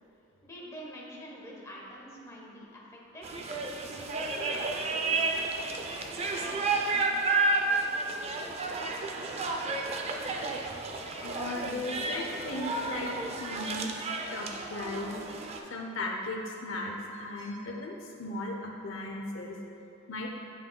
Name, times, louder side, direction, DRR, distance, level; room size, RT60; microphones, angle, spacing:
voice 1, 0.4-3.3, equal, 15° left, -4 dB, 0.8 m, -46 dB
sound 1, 3.2-15.6, right 3 dB, 30° right, 0.4 m, -31 dB
voice 2, 11.2-15.2 15.7-19.6 20.1-20.3, left 2 dB, 70° left, 1 dB, 0.6 m, -37 dB
7.8 x 6.0 x 2.2 m, 2.7 s
head